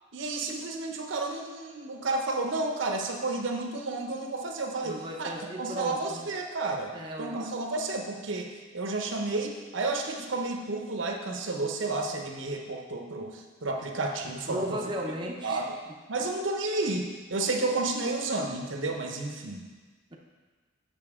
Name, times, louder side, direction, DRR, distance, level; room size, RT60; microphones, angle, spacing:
voice 1, 0.1-5.3 5.6-8.5 8.7-14.8 15.4-15.8 16.1-19.6, right 2 dB, 80° right, 2 dB, 0.8 m, -31 dB
voice 2, 4.8-6.3 6.9-7.4 14.5-15.6, right 1 dB, 25° right, -1 dB, 0.6 m, -35 dB
6.9 x 6.7 x 3.6 m, 1.4 s
head